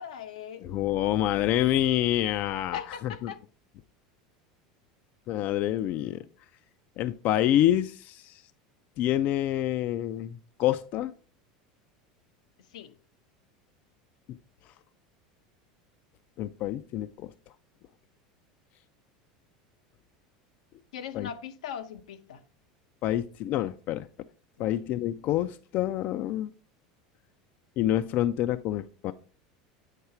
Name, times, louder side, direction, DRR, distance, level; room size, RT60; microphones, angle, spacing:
voice 1, 0.0-0.7 2.7-3.4 12.7-12.9 20.9-22.4 24.6-24.7, left 8 dB, 90° left, 0.7 m, -39 dB
voice 2, 0.6-3.3 5.3-6.2 7.0-8.4 9.0-11.1 16.4-17.3 21.1-21.3 23.0-24.1 24.6-26.5 27.8-29.1, left 13 dB, 55° left, 0.4 m, -27 dB
8.2 x 4.7 x 4.4 m
supercardioid pair, 105°, 4 cm